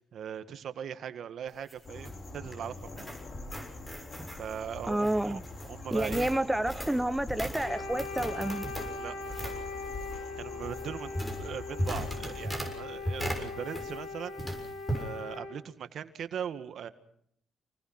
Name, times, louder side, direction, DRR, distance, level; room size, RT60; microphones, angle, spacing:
voice 1, 0.0-3.1 4.4-6.3 9.0-9.7 10.4-14.4 14.9-16.9, right 8 dB, 65° right, 1.8 m, -40 dB
sound 1, 1.5-14.1 14.4-15.1, equal, 15° left, 6.6 m, -38 dB
sound 2, 1.8-12.5, left 3 dB, 45° left, 2.2 m, -46 dB
voice 2, 4.9-5.4 5.9-8.7, right 1 dB, 5° right, 0.8 m, -29 dB
Wind instrument woodwind instrument, 7.6-15.6, left 4 dB, 75° left, 3.4 m, -40 dB
28.0 x 20.0 x 6.0 m
cardioid pair, 90°, 0 cm